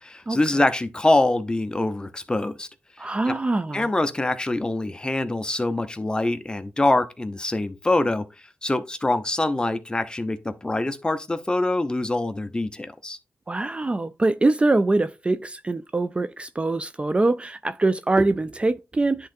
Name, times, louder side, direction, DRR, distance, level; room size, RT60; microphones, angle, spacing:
voice 1, 0.0-2.7 3.0-3.4 3.7-8.2 8.6-13.2, left 2 dB, 20° left, 0.8 m, -24 dB
voice 2, 3.0-3.9 13.5-19.3, right 2 dB, 25° right, 0.4 m, -23 dB
10.5 x 3.7 x 2.6 m
cardioid pair, 65°, 4 cm